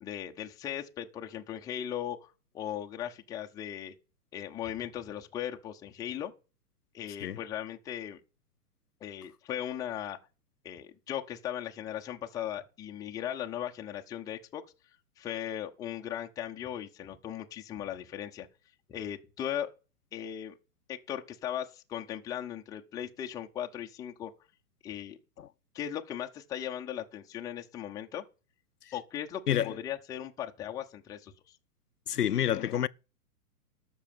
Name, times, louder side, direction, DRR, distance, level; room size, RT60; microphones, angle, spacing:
voice 1, 0.0-2.3 2.5-3.9 4.3-6.3 6.9-8.2 9.0-10.2 10.6-14.6 15.2-18.5 18.9-19.7 20.1-20.5 20.9-24.3 24.8-25.2 25.7-28.2 28.9-31.3, left 10 dB, 10° left, 0.6 m, -38 dB
voice 2, 32.1-32.9, left 10 dB, 85° left, 0.6 m, -28 dB
13.0 x 6.2 x 7.5 m
figure-of-eight pair, 115°, 46 cm